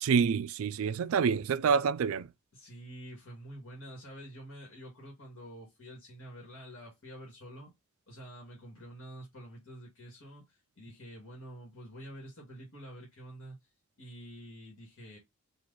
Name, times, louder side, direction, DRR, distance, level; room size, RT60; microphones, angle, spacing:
voice 1, 0.0-2.3, right 6 dB, 75° right, 0.4 m, -27 dB
voice 2, 2.5-7.7 8.1-13.6 14.0-15.2, right 1 dB, 70° left, 1.8 m, -48 dB
4.6 x 2.5 x 3.8 m
head